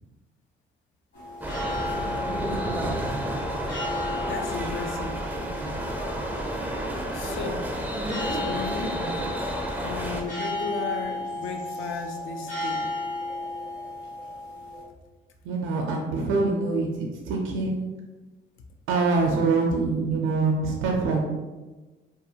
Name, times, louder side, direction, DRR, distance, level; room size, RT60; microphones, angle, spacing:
sound 1, 1.1-14.8, left 2 dB, 70° left, 1.2 m, -35 dB
sound 2, 1.4-10.2, right 1 dB, 10° right, 0.4 m, -31 dB
voice 1, 1.6-3.2 15.4-18.0 18.9-21.3, right 3 dB, 90° right, 1 dB, 0.4 m, -26 dB
voice 2, 4.2-5.3 7.1-7.8 8.2-9.0 9.8-12.9, left 4 dB, 85° left, 4 dB, 0.4 m, -35 dB
2.4 x 2.3 x 2.7 m, 1.2 s
cardioid pair, 90°, 20 cm